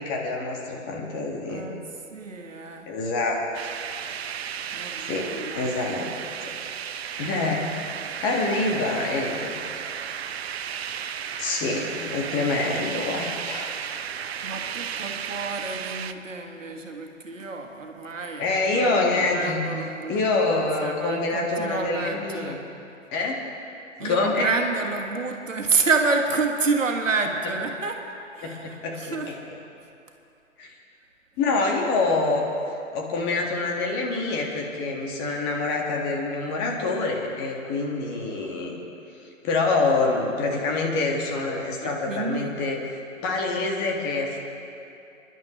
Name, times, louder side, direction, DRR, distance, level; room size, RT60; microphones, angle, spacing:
voice 1, 0.0-1.7 2.9-3.4 5.0-6.1 6.4-6.5 7.2-7.7 8.2-9.9 11.4-13.7 18.4-19.6 20.1-22.6 23.1-23.4 24.0-24.5 28.4-29.3 30.6-30.7 31.4-32.4 32.9-38.8 39.4-44.4, left 3 dB, 25° left, 0 dB, 1.8 m, -26 dB
voice 2, 1.5-1.8 2.1-2.9 4.7-5.7 14.4-18.5 18.7-22.6 24.0-28.0 28.3-29.3 41.8-42.5, right 4 dB, 75° right, 3 dB, 1.7 m, -29 dB
sound 1, 3.5-16.1, right 8 dB, 55° right, 0.6 m, -34 dB
28.0 x 11.0 x 3.2 m, 2.7 s
figure-of-eight pair, 120°, 39 cm